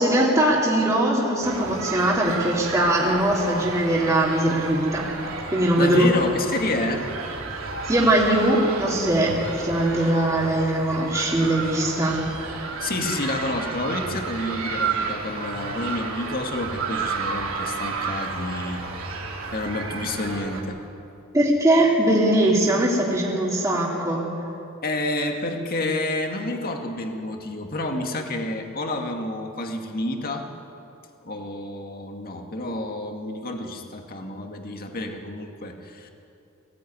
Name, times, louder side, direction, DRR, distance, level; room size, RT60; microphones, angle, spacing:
voice 1, 0.0-5.1 5.5-6.1 7.9-12.2 21.3-24.2, right 1 dB, 15° right, -4 dB, 2.8 m, -21 dB
sound 1, 1.4-20.6, right 4 dB, 70° right, 3.2 m, -32 dB
voice 2, 5.8-7.1 12.8-18.8 19.5-20.8 24.8-30.5 31.2-36.1, left 1 dB, 45° left, 3 dB, 2.1 m, -29 dB
20.5 x 16.0 x 9.6 m, 2.8 s
head